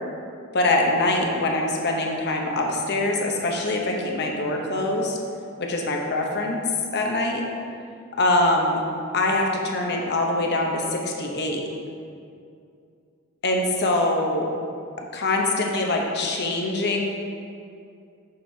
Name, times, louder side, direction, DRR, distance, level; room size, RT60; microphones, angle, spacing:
voice 1, 0.5-5.2 5.6-6.6 6.9-7.4 8.2-8.8 9.1-11.6 13.4-14.5 15.0-17.0, left 2 dB, 50° left, 1 dB, 0.9 m, -23 dB
7.6 x 6.4 x 2.8 m, 2.4 s
head